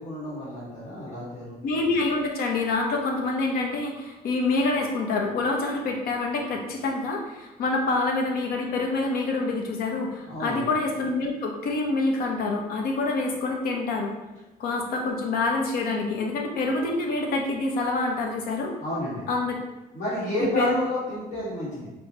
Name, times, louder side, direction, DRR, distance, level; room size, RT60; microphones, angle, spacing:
voice 1, 0.0-1.6 10.2-10.6 18.8-19.2 19.9-21.9, equal, 55° left, -8 dB, 1.4 m, -30 dB
voice 2, 1.6-14.1 14.6-18.7 19.3-19.6 20.4-20.7, left 3 dB, 75° left, 1 dB, 0.7 m, -26 dB
4.5 x 2.1 x 2.8 m, 1.1 s
cardioid pair, 130°, 16 cm